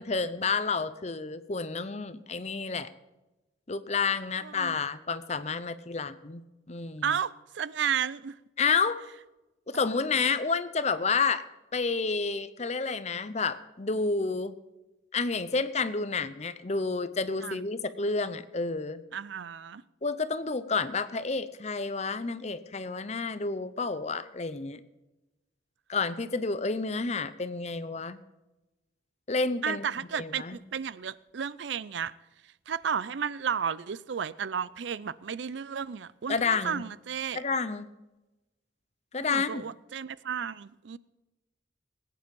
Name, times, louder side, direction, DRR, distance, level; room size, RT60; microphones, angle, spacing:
voice 1, 0.0-2.9 3.7-6.4 6.7-7.1 8.6-9.0 9.7-11.5 11.7-14.6 15.1-19.0 20.0-24.8 25.9-28.2 29.3-29.9 30.2-30.6 36.3-36.8 37.3-37.9 39.1-39.6, left 4 dB, 35° left, 0.7 m, -30 dB
voice 2, 4.4-4.8 7.0-8.4 17.4-17.6 19.1-19.8 29.6-32.1 32.7-37.4 39.3-41.0, right 7 dB, 70° right, 0.5 m, -33 dB
20.0 x 9.1 x 5.4 m
head